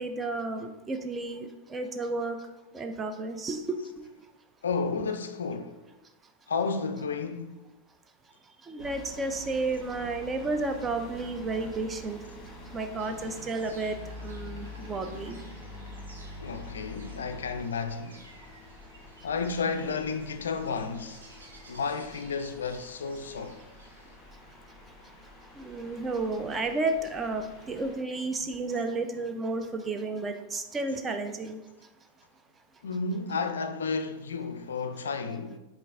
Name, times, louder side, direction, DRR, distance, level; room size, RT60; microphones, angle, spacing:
voice 1, 0.0-2.4 2.7-3.8 8.6-12.2 12.7-15.4 25.6-31.6, right 3 dB, 20° right, 0.4 m, -32 dB
voice 2, 4.6-5.8 6.5-7.6 16.4-18.2 19.2-21.2 21.7-23.6 32.8-35.6, left 4 dB, 65° left, 0.3 m, -32 dB
sound 1, 8.8-28.0, left 1 dB, 20° left, 1.4 m, -46 dB
Insect, 13.0-24.2, right 2 dB, 70° right, 0.6 m, -55 dB
5.1 x 2.5 x 3.4 m
figure-of-eight pair, 90°, 0 cm